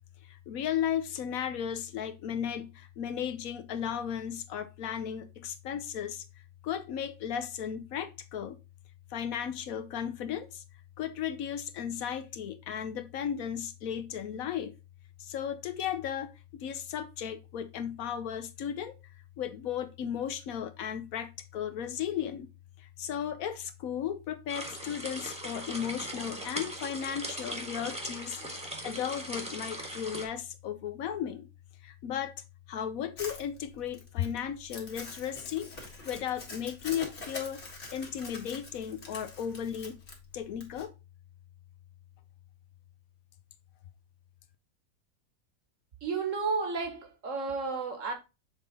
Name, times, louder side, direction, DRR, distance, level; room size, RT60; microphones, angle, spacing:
voice 1, 0.5-6.2 6.6-8.6 9.1-10.6 11.0-14.7 15.2-19.0 19.4-22.5 23.0-28.4 28.8-31.5 31.8-32.3 32.7-35.7 36.0-37.6 37.9-40.0 40.3-40.9, left 9 dB, 75° left, 1.2 m, -35 dB
sound 1, 24.5-30.3, right 1 dB, 5° right, 1.2 m, -39 dB
Crumpling crinkling, 33.2-40.9, left 3 dB, 50° left, 1.9 m, -45 dB
voice 2, 46.0-48.1, right 4 dB, 60° right, 1.5 m, -32 dB
6.6 x 3.7 x 3.9 m
omnidirectional pair, 1.5 m